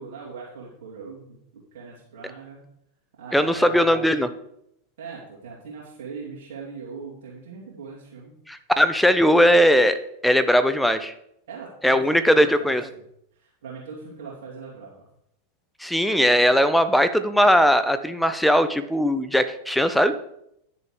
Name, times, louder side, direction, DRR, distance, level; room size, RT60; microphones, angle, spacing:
voice 1, 0.0-2.6 3.2-3.8 5.0-8.3 11.5-13.0 13.4-15.1, right 5 dB, 55° right, -5 dB, 2.7 m, -40 dB
voice 2, 3.3-4.3 8.5-10.0 10.2-11.1 11.8-12.8 15.8-20.1, equal, ahead, 11 dB, 0.9 m, -19 dB
10.5 x 6.8 x 4.7 m, 0.75 s
figure-of-eight pair, 90°, 0 cm